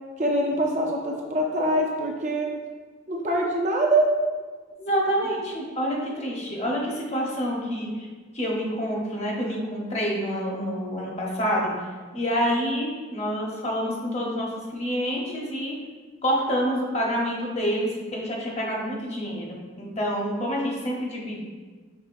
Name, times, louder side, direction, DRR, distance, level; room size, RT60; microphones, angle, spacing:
voice 1, 0.2-2.5 3.1-4.1, right 1 dB, 35° right, 0 dB, 0.5 m, -24 dB
voice 2, 4.8-7.9 8.3-11.7 12.1-15.7 16.2-21.4, equal, 35° left, -3 dB, 0.8 m, -27 dB
5.5 x 3.7 x 2.5 m, 1.4 s
head